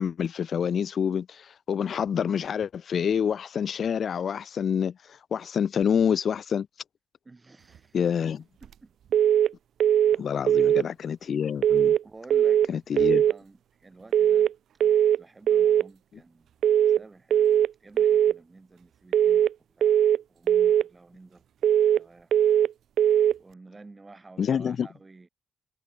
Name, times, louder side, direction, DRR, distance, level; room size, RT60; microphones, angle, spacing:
voice 1, 0.0-6.7 7.9-8.4 10.1-12.0 12.7-13.2 24.4-24.9, left 7 dB, 55° left, 0.9 m, -27 dB
voice 2, 7.2-8.3 8.6-8.9 10.5-10.6 12.0-14.5 14.8-16.5 16.9-20.0 20.3-22.3 23.4-25.3, right 3 dB, 20° right, 6.8 m, -51 dB
sound 1, 9.1-9.5 9.8-10.2 10.5-10.9 11.6-12.0 12.3-12.7 13.0-13.4 14.1-14.5 14.8-15.2 15.5-15.9 16.6-17.0 17.3-17.7 18.0-18.4 19.1-19.5 19.8-20.2 20.5-20.9 21.6-22.0 22.3-22.7 23.0-23.4, right 10 dB, 65° right, 0.3 m, -20 dB
cardioid pair, 90°, 0 cm